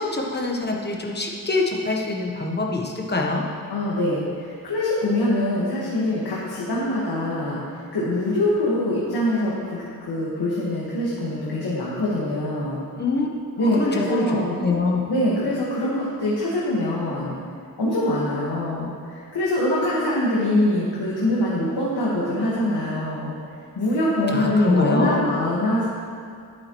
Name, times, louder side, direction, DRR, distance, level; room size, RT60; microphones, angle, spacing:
voice 1, 0.0-3.4 13.0-13.3 13.6-15.4 24.3-25.2, left 3 dB, 25° left, -1 dB, 1.1 m, -24 dB
voice 2, 3.7-12.8 13.6-14.6 15.1-17.3 17.8-23.3 23.8-25.9, left 1 dB, 80° left, -7 dB, 1.6 m, -24 dB
11.5 x 8.4 x 3.1 m, 2.4 s
wide cardioid pair, 115°, 38 cm